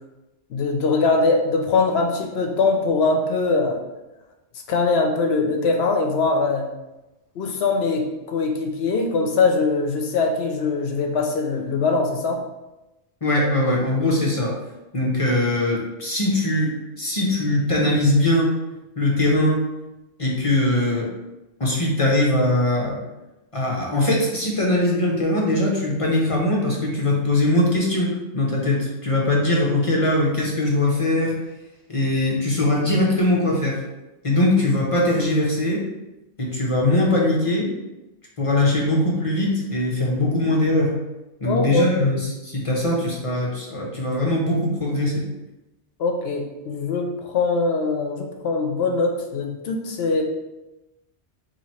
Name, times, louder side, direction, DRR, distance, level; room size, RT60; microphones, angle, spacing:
voice 1, 0.5-3.8 4.7-6.7 7.4-12.4 41.4-41.9 46.0-50.2, left 3 dB, 65° left, 2 dB, 0.8 m, -22 dB
voice 2, 13.2-14.5 14.9-18.6 19.0-19.7 20.2-21.1 21.6-22.9 23.5-31.3 31.9-33.8 34.2-35.8 36.4-37.7 38.4-40.9 41.4-45.2, left 1 dB, 35° left, -3 dB, 0.6 m, -21 dB
2.9 x 2.8 x 4.2 m, 0.99 s
omnidirectional pair, 1.2 m